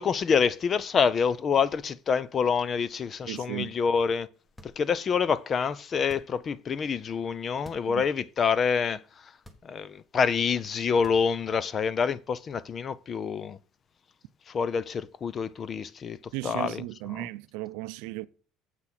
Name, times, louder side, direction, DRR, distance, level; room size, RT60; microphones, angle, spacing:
voice 1, 0.0-4.3 4.8-9.0 9.6-13.6 14.5-16.2 16.4-16.8 17.2-17.3, left 6 dB, 25° left, 0.5 m, -27 dB
voice 2, 3.3-3.7 7.9-8.0 16.3-18.3, right 19 dB, 85° right, 0.6 m, -35 dB
sound 1, 4.4-5.2 6.0-6.6 7.5-8.0 8.4-8.5 9.4-10.0 10.9-11.6, left 1 dB, 5° left, 1.1 m, -52 dB
7.7 x 6.0 x 5.9 m
cardioid pair, 165°, 0 cm